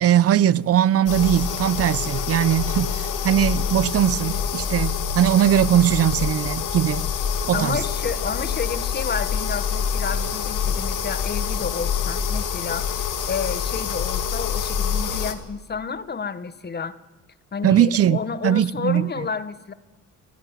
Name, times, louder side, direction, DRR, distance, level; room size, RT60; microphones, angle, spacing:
voice 1, 0.0-7.1 7.5-7.8 17.6-18.2 18.4-19.1, right 10 dB, 50° right, 0.6 m, -20 dB
sound 1, 1.1-15.3, left 7 dB, 75° left, 1.9 m, -26 dB
voice 2, 7.5-17.0 17.5-19.7, left 5 dB, 30° left, 1.0 m, -30 dB
29.0 x 9.7 x 9.2 m
cardioid pair, 100°, 32 cm